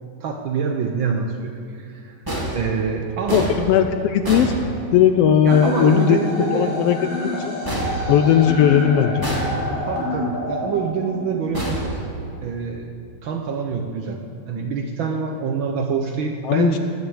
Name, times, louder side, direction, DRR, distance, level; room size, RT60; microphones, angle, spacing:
voice 1, 0.2-2.2 2.5-3.5 5.5-6.7 9.9-11.8 12.4-12.9 13.2-14.2 14.5-16.8, right 5 dB, 80° right, 3 dB, 1.1 m, -25 dB
sound 1, 2.3-5.3 7.6-8.7 9.2-10.0 11.5-12.6, right 1 dB, 10° right, 2.1 m, -28 dB
voice 2, 3.3-4.5 4.9-6.2 6.5-7.5 8.1-9.3 16.4-16.7, left 9 dB, 80° left, 8 dB, 1.4 m, -17 dB
sound 2, 5.5-11.5, left 2 dB, 50° left, 4.1 m, -28 dB
19.5 x 6.7 x 8.7 m, 2.4 s
omnidirectional pair, 3.3 m